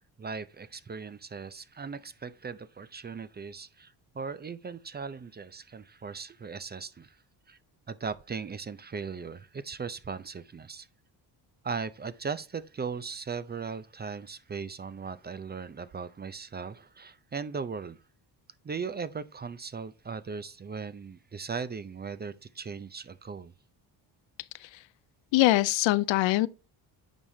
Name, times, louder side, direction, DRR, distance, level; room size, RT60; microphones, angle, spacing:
voice 1, 0.2-7.2 7.5-7.6 7.9-10.9 11.6-18.0 18.6-23.5, right 5 dB, 25° right, 0.4 m, -38 dB
voice 2, 25.3-26.5, left 17 dB, 80° left, 0.5 m, -23 dB
8.8 x 4.8 x 2.7 m
cardioid pair, 80°, 45 cm